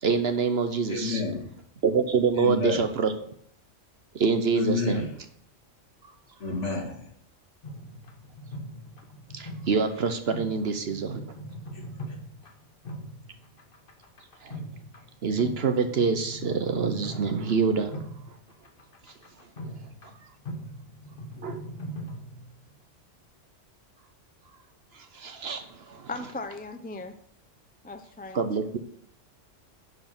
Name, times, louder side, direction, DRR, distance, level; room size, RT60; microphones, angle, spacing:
voice 1, 0.0-1.2 1.8-3.1 4.1-5.1 9.3-11.2 14.4-14.7 15.2-17.9 19.6-19.7 21.4-21.6 25.1-26.1 28.3-28.8, right 5 dB, 60° right, 8 dB, 1.1 m, -26 dB
voice 2, 0.9-1.5 2.3-2.9 4.5-5.1 6.4-7.1 11.7-12.2, left 3 dB, 65° left, -1 dB, 2.3 m, -30 dB
sound 1, 7.6-22.7, equal, 45° left, 1.4 m, -41 dB
voice 3, 26.1-27.2 27.8-28.4, left 3 dB, 10° left, 7 dB, 0.4 m, -37 dB
11.0 x 4.9 x 5.9 m, 0.66 s
omnidirectional pair, 1.3 m